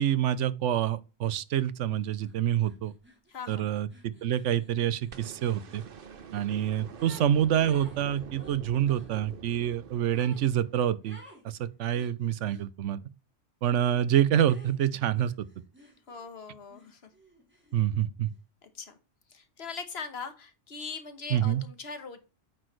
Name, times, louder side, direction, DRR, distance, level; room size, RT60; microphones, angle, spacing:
voice 1, 0.0-2.9 3.5-5.8 6.3-11.2 11.4-13.0 13.6-15.5 17.7-18.3 21.3-21.6, right 10 dB, 80° right, 1.0 m, -27 dB
sound 1, 2.2-2.3 2.6-7.3 7.6-9.1 10.1-10.5 11.0-11.4 11.9-12.7 13.7-14.0 14.4-16.3 16.7-18.1, right 1 dB, 10° right, 3.4 m, -54 dB
voice 2, 3.3-3.7 16.1-17.1 18.6-19.0 19.3-22.2, left 5 dB, 60° left, 1.4 m, -41 dB
sound 2, 5.1-11.3 12.8-12.9, right 7 dB, 50° right, 1.0 m, -47 dB
8.8 x 6.3 x 3.1 m
omnidirectional pair, 1.2 m